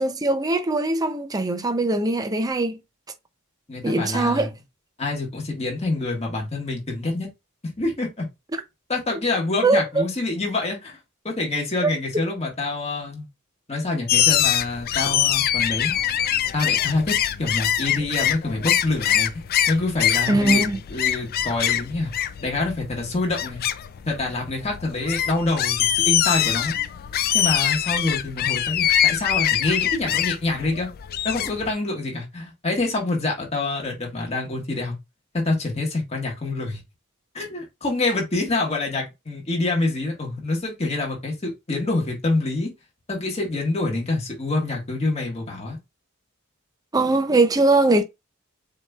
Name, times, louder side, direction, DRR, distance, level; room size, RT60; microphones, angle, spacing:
voice 1, 0.0-2.8 3.8-4.5 9.6-10.0 11.8-11.9 20.3-20.8 46.9-48.0, right 2 dB, 15° right, 0.5 m, -21 dB
voice 2, 3.7-4.5 5.0-7.3 7.6-8.3 8.9-10.9 11.2-13.3 13.7-16.0 16.5-20.6 20.9-22.1 22.4-23.6 24.0-26.7 27.3-30.9 31.2-35.0 35.3-36.8 37.3-42.7 43.1-45.8, left 2 dB, 30° left, 1.6 m, -26 dB
sound 1, 14.1-31.7, left 11 dB, 45° left, 0.3 m, -24 dB
7.2 x 2.9 x 2.4 m
head